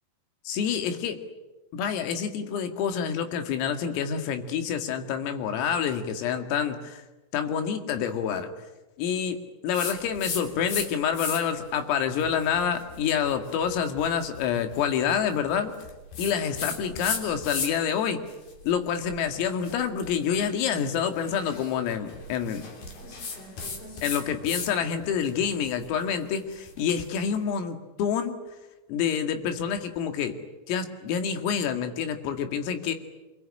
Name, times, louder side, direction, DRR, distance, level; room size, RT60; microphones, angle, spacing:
voice 1, 0.5-1.2 1.7-7.0 7.3-8.5 9.0-9.4 9.6-15.7 16.2-18.2 18.7-22.6 24.0-28.4 28.9-30.4 30.7-33.0, left 7 dB, 80° left, 7 dB, 4.7 m, -27 dB
sound 1, 9.7-10.9 11.1-11.6 12.2-17.9 18.3-24.7 25.0-27.2, left 4 dB, 45° left, 4.6 m, -37 dB
26.5 x 21.5 x 9.9 m, 1.1 s
omnidirectional pair, 5.9 m